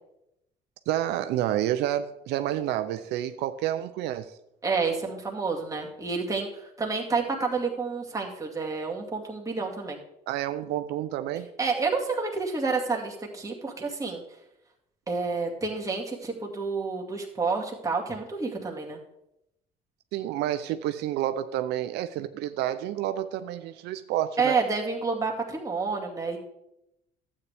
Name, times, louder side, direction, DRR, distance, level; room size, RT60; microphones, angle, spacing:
voice 1, 0.9-4.3 10.3-11.5 20.1-24.6, right 12 dB, 85° right, 10 dB, 0.5 m, -29 dB
voice 2, 4.6-10.0 11.6-14.2 15.1-19.0 24.4-26.4, right 4 dB, 20° right, -1 dB, 2.1 m, -29 dB
12.0 x 8.3 x 3.4 m, 0.83 s
cardioid pair, 110°, 17 cm